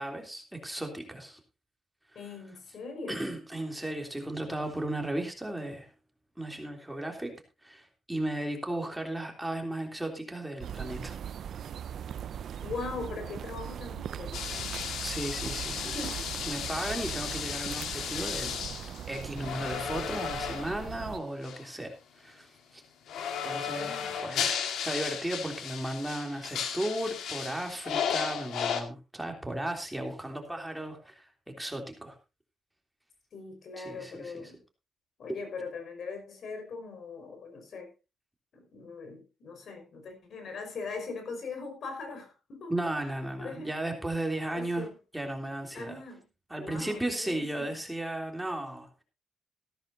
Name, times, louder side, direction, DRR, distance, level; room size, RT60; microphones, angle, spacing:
voice 1, 0.0-1.4 3.1-5.9 6.4-7.4 7.6-11.2 15.0-16.0 16.5-18.5 19.1-22.8 23.4-32.2 33.8-34.5 42.7-44.9 45.1-46.0 46.5-49.0, right 1 dB, 5° right, 3 dB, 3.3 m, -35 dB
voice 2, 2.2-3.2 12.6-14.8 15.8-16.3 23.7-24.2 33.3-34.6 35.2-37.9 38.5-42.7 43.4-43.8 44.5-45.0 45.7-46.2 46.6-47.7, left 4 dB, 60° left, 6 dB, 5.3 m, -41 dB
sound 1, 10.6-21.2, right 9 dB, 65° right, 0.5 m, -40 dB
sound 2, 14.3-20.9 21.4-21.6 23.1-28.8, left 7 dB, 85° left, 1.9 m, -34 dB
15.0 x 13.0 x 2.8 m, 0.28 s
cardioid pair, 95°, 0 cm